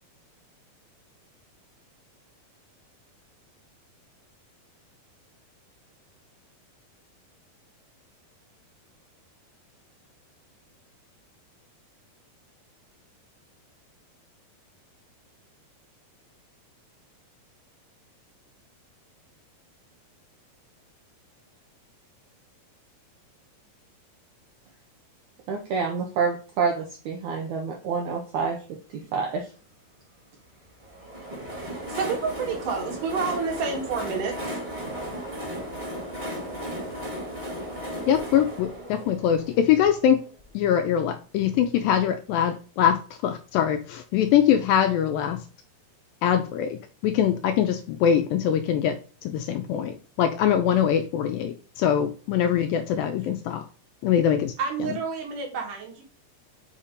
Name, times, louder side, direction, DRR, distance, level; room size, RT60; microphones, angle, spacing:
voice 1, 25.5-28.6 29.1-29.4, right 5 dB, 80° right, 1 dB, 1.8 m, -27 dB
Train, 30.8-40.5, equal, 20° right, 1.2 m, -35 dB
voice 2, 31.6-34.4 54.6-56.0, right 5 dB, 60° right, 1 dB, 2.6 m, -29 dB
voice 3, 38.1-40.2 40.6-45.4 46.2-49.0 49.2-53.6 54.0-54.5, left 9 dB, 80° left, 7 dB, 2.1 m, -23 dB
7.2 x 2.8 x 5.0 m, 0.38 s
omnidirectional pair, 4.4 m